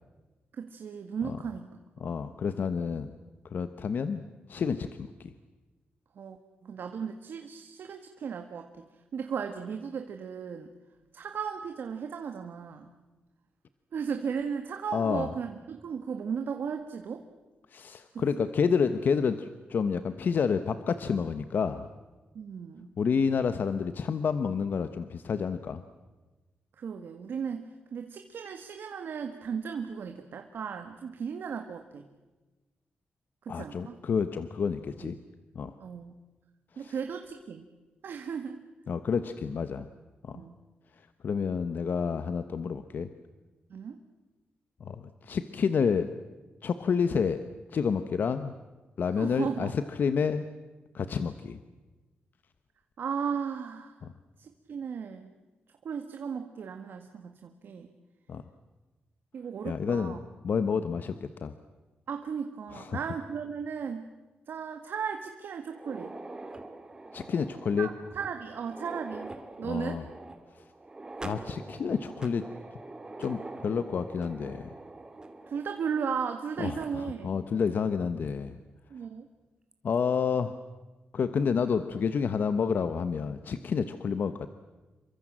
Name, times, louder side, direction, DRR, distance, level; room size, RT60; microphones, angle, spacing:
voice 1, 0.5-2.2 6.2-6.4 6.6-10.7 11.1-12.9 13.9-17.2 18.1-18.5 22.3-22.9 26.8-27.7 27.9-32.1 33.4-34.0 35.0-35.1 35.8-36.2 36.8-37.7 38.0-38.6 40.3-40.6 43.7-44.0 49.2-49.7 53.0-53.9 54.4-55.3 55.8-57.9 59.3-60.2 62.1-64.1 64.5-66.1 67.8-69.3 69.6-70.0 75.5-77.4 78.9-79.3, right 6 dB, 70° right, 6 dB, 1.8 m, -36 dB
voice 2, 2.0-3.1 3.5-4.2 4.5-5.3 14.9-15.3 17.7-21.9 23.0-25.8 33.5-35.2 35.5-35.7 36.8-36.9 38.9-39.9 40.2-40.4 41.2-43.1 44.8-46.1 46.6-47.4 47.7-48.5 49.0-50.5 50.9-51.6 54.0-54.1 58.3-58.4 59.6-60.1 60.4-61.5 62.7-63.0 67.1-67.9 69.6-70.0 71.2-72.4 73.2-74.7 76.6-78.6 79.8-80.5 81.1-84.5, left 6 dB, 60° left, 11 dB, 1.2 m, -29 dB
sound 1, 65.6-76.4 76.8-76.9 77.7-77.8 78.3-78.4 79.7-80.0, right 2 dB, 20° right, 2.7 m, -44 dB
28.0 x 24.0 x 7.6 m, 1.2 s
wide cardioid pair, 120°, 4 cm